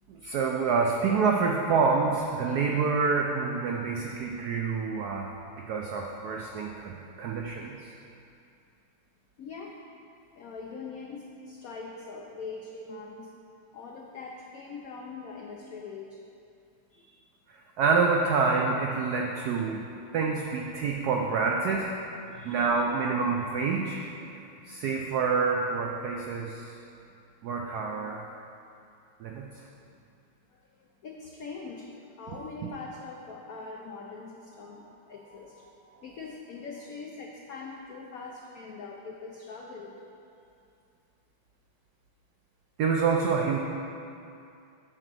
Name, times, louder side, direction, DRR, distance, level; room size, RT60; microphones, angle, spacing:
voice 1, 0.1-5.3 5.6-7.9 17.5-19.8 20.1-21.9 22.4-24.0 24.7-26.7 27.4-28.2 29.2-29.6 42.8-43.6, right 4 dB, 80° right, 1 dB, 0.8 m, -27 dB
voice 2, 9.4-9.8 10.3-13.3 13.7-16.2 16.9-17.1 22.2-22.7 24.2-24.5 30.5-35.7 36.0-40.0, left 4 dB, 85° left, -1 dB, 0.7 m, -42 dB
8.6 x 3.9 x 6.2 m, 2.6 s
omnidirectional pair, 2.2 m